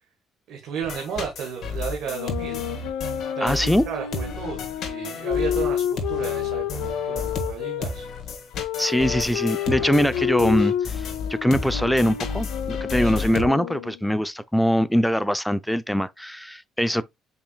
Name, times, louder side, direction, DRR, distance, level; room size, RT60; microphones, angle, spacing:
voice 1, 0.5-2.6 3.4-8.1 13.0-13.3, right 7 dB, 75° right, 1.3 m, -33 dB
sound 1, 0.8-13.5, left 4 dB, 60° left, 1.5 m, -32 dB
sound 2, 2.0-7.9 8.6-14.0, left 10 dB, 90° left, 0.5 m, -29 dB
voice 2, 3.4-3.8 8.8-17.0, equal, 5° left, 0.4 m, -22 dB
5.5 x 4.3 x 2.2 m
supercardioid pair, 75°, 0 cm